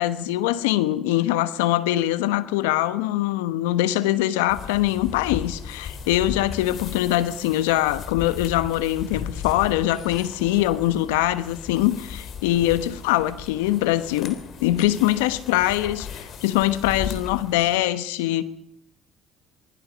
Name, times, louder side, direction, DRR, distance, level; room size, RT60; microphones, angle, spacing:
voice 1, 0.0-18.4, left 14 dB, 85° left, 1.0 m, -23 dB
sound 1, 4.5-17.8, left 7 dB, 60° left, 3.4 m, -37 dB
25.5 x 19.5 x 5.2 m
hypercardioid pair, 65°, 0 cm